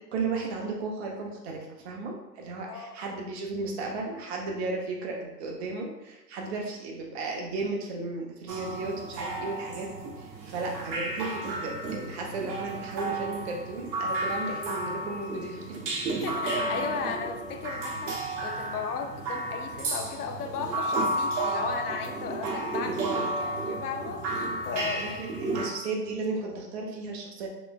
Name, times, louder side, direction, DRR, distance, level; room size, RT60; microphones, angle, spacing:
voice 1, 0.1-15.8 22.8-23.3 24.7-27.5, right 3 dB, 40° right, 0 dB, 0.7 m, -34 dB
sound 1, 8.5-25.7, right 2 dB, 85° right, 0.9 m, -32 dB
voice 2, 16.2-25.1, left 6 dB, 65° left, 4 dB, 0.7 m, -36 dB
3.3 x 3.1 x 2.2 m, 0.97 s
hypercardioid pair, 140°, 49 cm